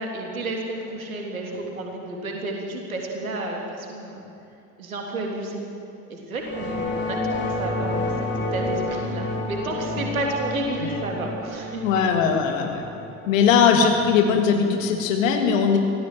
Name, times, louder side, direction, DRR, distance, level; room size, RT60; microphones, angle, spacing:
voice 1, 0.0-4.2 4.8-5.6 6.1-11.8, right 2 dB, 80° right, 1 dB, 3.5 m, -31 dB
sound 1, 6.4-15.0, left 2 dB, 25° left, 6.3 m, -30 dB
voice 2, 11.8-12.8 13.3-15.8, left 6 dB, 70° left, 3 dB, 2.9 m, -20 dB
25.0 x 16.5 x 7.9 m, 2.8 s
figure-of-eight pair, 60°, 41 cm